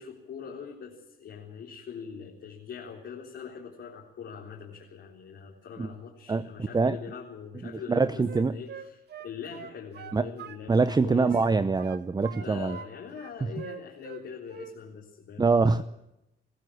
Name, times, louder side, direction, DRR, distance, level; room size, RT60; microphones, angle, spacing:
voice 1, 0.0-11.4 12.4-15.8, left 6 dB, 65° left, 3.8 m, -42 dB
Wind instrument woodwind instrument, 7.8-11.0 11.3-12.9 13.1-14.2 14.5-14.8, right 8 dB, 55° right, 1.5 m, -44 dB
voice 2, 7.9-8.5 10.1-10.2 10.7-12.8 15.4-15.8, right 4 dB, 20° right, 0.7 m, -24 dB
22.5 x 15.0 x 8.5 m
cardioid pair, 90°, 20 cm